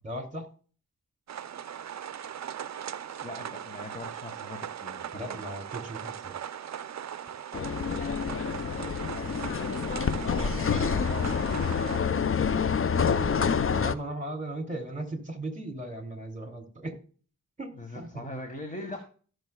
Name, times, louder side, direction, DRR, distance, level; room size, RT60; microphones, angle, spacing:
voice 1, 0.0-0.5 5.1-6.4 10.1-10.4 12.9-16.9 17.6-18.2, right 1 dB, 20° right, 4 dB, 2.7 m, -37 dB
sound 1, 1.3-12.0, right 9 dB, 50° right, 0.6 m, -39 dB
voice 2, 3.2-5.4 9.2-9.6 10.3-11.6 17.7-19.0, left 2 dB, 20° left, 4 dB, 1.6 m, -41 dB
sound 2, 7.5-13.9, left 6 dB, 40° left, 0.6 m, -27 dB
17.5 x 6.6 x 2.3 m, 0.41 s
cardioid pair, 65°, 35 cm